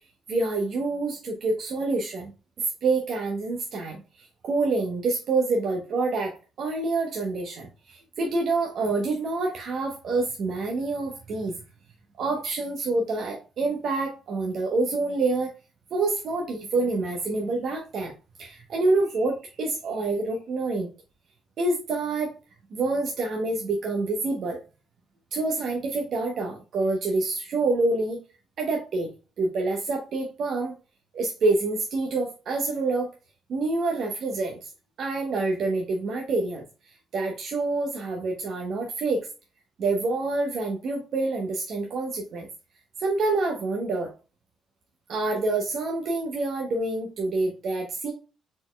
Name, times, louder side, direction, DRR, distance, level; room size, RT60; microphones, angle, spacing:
voice 1, 0.3-2.3 2.6-11.6 12.2-15.5 15.9-18.1 18.4-20.9 21.6-22.3 22.7-24.6 25.3-28.2 28.6-29.1 29.4-30.7 31.1-33.1 33.5-34.7 35.0-39.3 39.8-42.5 43.0-44.1 45.1-48.1, right 3 dB, 65° right, 2 dB, 0.9 m, -27 dB
4.3 x 4.1 x 2.2 m, 0.31 s
cardioid pair, 90°, 0 cm